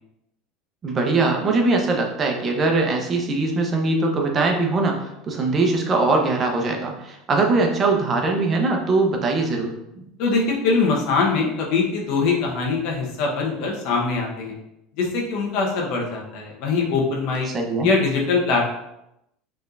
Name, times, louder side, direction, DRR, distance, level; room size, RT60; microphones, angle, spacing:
voice 1, 0.8-10.1 17.5-17.9, right 3 dB, 35° right, 2 dB, 1.0 m, -21 dB
voice 2, 10.2-14.6 15.0-17.5 17.8-18.7, left 4 dB, 65° left, -1 dB, 1.2 m, -22 dB
5.4 x 3.6 x 2.7 m, 0.83 s
hypercardioid pair, 90°, 0 cm